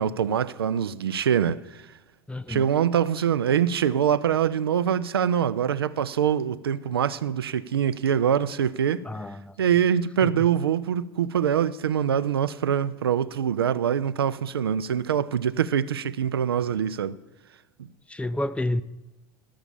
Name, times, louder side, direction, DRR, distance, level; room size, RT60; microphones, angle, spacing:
voice 1, 0.0-1.8 2.5-9.0 9.6-17.2, right 8 dB, 85° right, 0.5 m, -24 dB
voice 2, 2.3-2.7 9.0-9.6 10.2-10.5 18.1-18.8, left 1 dB, 10° left, 0.5 m, -30 dB
12.5 x 6.9 x 8.7 m
hypercardioid pair, 75°, 12 cm